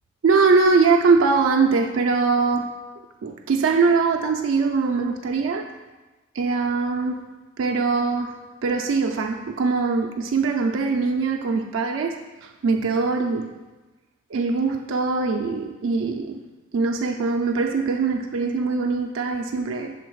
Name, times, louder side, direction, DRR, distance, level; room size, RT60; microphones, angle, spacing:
voice 1, 0.2-2.7 3.2-5.7 6.4-7.3 7.6-8.4 8.6-13.5 14.3-16.4 16.7-19.9, right 4 dB, 70° right, 2 dB, 0.4 m, -22 dB
5.5 x 3.8 x 4.6 m, 1.2 s
head